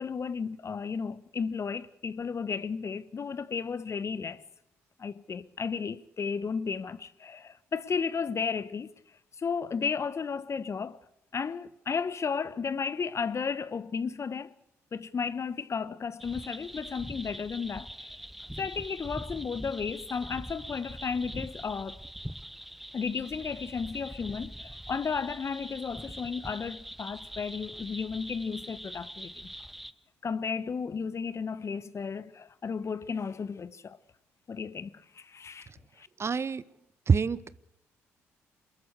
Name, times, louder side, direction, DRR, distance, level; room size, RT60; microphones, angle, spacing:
voice 1, 0.0-4.4 5.0-8.9 9.4-11.0 11.3-14.5 14.9-18.1 18.6-22.0 22.9-29.5 30.2-34.0 34.5-35.7 36.0-36.1, left 5 dB, 40° left, 1.2 m, -34 dB
sound 1, 16.2-29.9, equal, ahead, 1.1 m, -43 dB
voice 2, 36.2-36.6 37.1-37.6, right 5 dB, 35° right, 0.9 m, -26 dB
27.5 x 14.0 x 8.2 m
hypercardioid pair, 45°, 7 cm